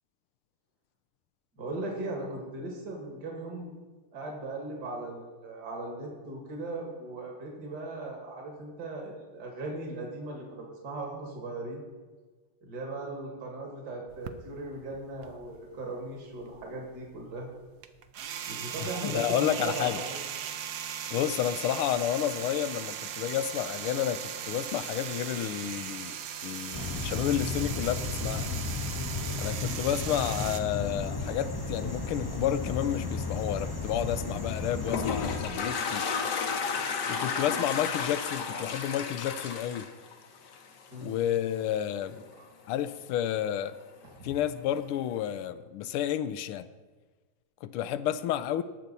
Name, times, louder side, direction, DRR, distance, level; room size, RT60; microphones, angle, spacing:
voice 1, 1.6-3.7 4.1-11.8 12.6-17.5 18.5-20.2 33.2-33.3 40.9-41.1 42.3-42.4 44.0-44.3, right 2 dB, 50° right, 0 dB, 2.6 m, -38 dB
sound 1, 14.1-15.9 16.2-30.6, right 9 dB, 70° right, 1.0 m, -38 dB
voice 2, 18.8-20.0 21.1-28.5 29.4-36.1 37.1-39.9 41.0-42.2 42.7-43.8 44.2-46.7 47.6-48.6, left 11 dB, 80° left, 13 dB, 1.5 m, -31 dB
sound 2, 26.7-35.4, left 3 dB, 20° left, 0.6 m, -34 dB
Toilet flush, 34.5-40.9, left 5 dB, 60° left, 1.4 m, -32 dB
19.5 x 6.7 x 4.1 m, 1.3 s
omnidirectional pair, 2.4 m